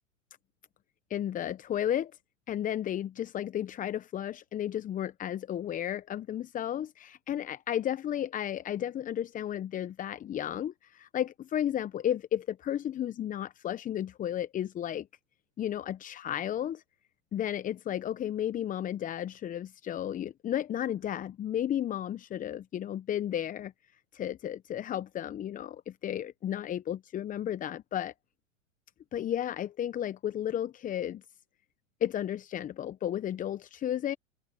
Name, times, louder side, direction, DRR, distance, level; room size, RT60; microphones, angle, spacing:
voice 1, 1.1-2.1 2.5-15.1 15.6-16.8 17.3-23.7 24.1-28.1 29.1-31.2 32.0-34.2, left 10 dB, 20° left, 0.8 m, -33 dB
hypercardioid pair, 105°, 40 cm